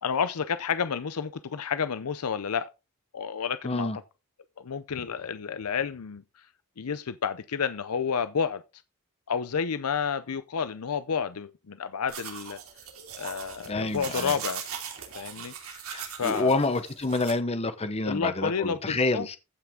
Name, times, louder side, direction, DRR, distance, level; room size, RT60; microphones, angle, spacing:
voice 1, 0.0-2.7 3.1-3.9 4.6-6.2 6.8-8.6 9.3-12.6 13.2-14.7 15.1-15.9 16.2-16.6 18.0-19.3, left 6 dB, 80° left, 0.6 m, -30 dB
voice 2, 3.6-4.0 13.7-14.3 15.9-19.4, left 2 dB, 30° left, 0.9 m, -28 dB
sound 1, 12.1-17.3, right 7 dB, 70° right, 2.8 m, -39 dB
15.0 x 5.9 x 3.6 m
head